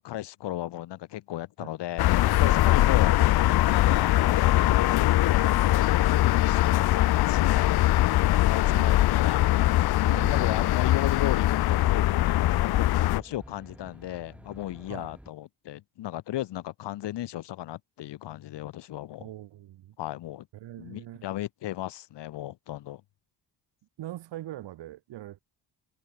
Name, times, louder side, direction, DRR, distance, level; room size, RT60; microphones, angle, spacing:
voice 1, 0.0-3.2 3.6-6.0 6.4-7.7 8.4-9.6 10.3-19.2 20.0-20.5 20.8-23.0, left 14 dB, 80° left, 2.8 m, -35 dB
sound 1, 2.0-13.2, left 15 dB, 65° left, 0.7 m, -22 dB
voice 2, 2.8-3.2 3.9-4.1 5.5-5.6 8.7-8.9 10.1-10.6 14.9-15.1 19.2-20.0 20.5-21.3 24.0-25.4, right 14 dB, 90° right, 5.6 m, -42 dB
Aircraft, 8.6-15.3, right 1 dB, 5° right, 7.8 m, -50 dB
cardioid pair, 165°, 41 cm